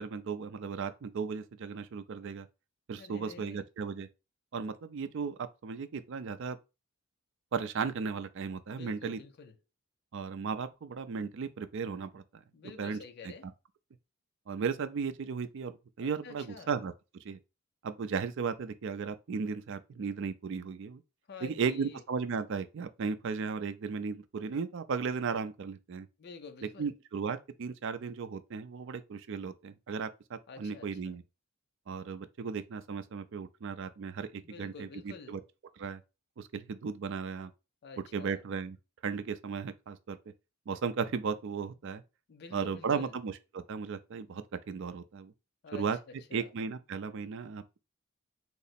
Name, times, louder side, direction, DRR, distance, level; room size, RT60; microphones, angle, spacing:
voice 1, 0.0-2.5 2.9-4.1 4.5-6.6 7.5-9.2 10.1-12.2 12.8-13.0 14.5-16.9 17.2-17.4 17.8-21.0 21.4-26.1 26.8-31.2 31.9-35.4 35.8-36.0 36.4-37.5 38.1-38.8 39.0-40.2 40.7-42.0 42.5-45.3 45.7-46.0 46.3-47.6, right 5 dB, 60° right, 0.4 m, -35 dB
voice 2, 3.0-3.7 8.7-9.6 12.5-13.5 16.0-16.7 21.3-22.0 26.2-26.9 30.5-31.2 34.4-35.4 37.8-38.4 42.3-43.1 45.6-46.5, left 5 dB, 50° left, 0.4 m, -49 dB
3.7 x 2.0 x 4.1 m
head